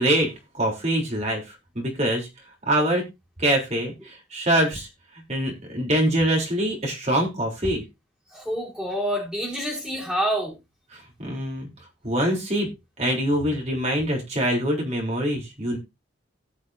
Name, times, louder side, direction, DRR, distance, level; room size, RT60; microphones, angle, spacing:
voice 1, 0.0-2.3 2.7-3.1 3.4-4.9 5.3-7.8 10.9-11.7 12.0-12.7 13.0-15.8, right 1 dB, 35° right, 0 dB, 3.5 m, -24 dB
voice 2, 8.3-10.5, equal, 5° right, -3 dB, 4.7 m, -27 dB
17.5 x 6.5 x 2.7 m, 0.24 s
head